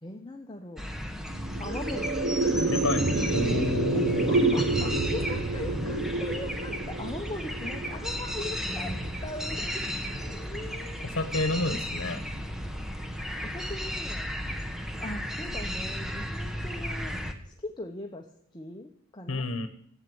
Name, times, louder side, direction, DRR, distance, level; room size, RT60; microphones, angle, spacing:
voice 1, 0.0-0.8 1.6-2.3 3.9-11.2 13.4-14.3 15.0-17.2 17.4-18.3 18.5-19.5, left 2 dB, 25° left, 2 dB, 1.0 m, -40 dB
sound 1, 0.8-17.3, equal, ahead, 1.0 m, -34 dB
sound 2, 1.3-11.8, right 2 dB, 50° right, 0.8 m, -30 dB
voice 2, 2.7-3.0 3.3-5.3 11.1-12.2 19.3-19.7, left 2 dB, 75° left, 9 dB, 1.1 m, -30 dB
13.0 x 8.4 x 7.8 m, 0.65 s
head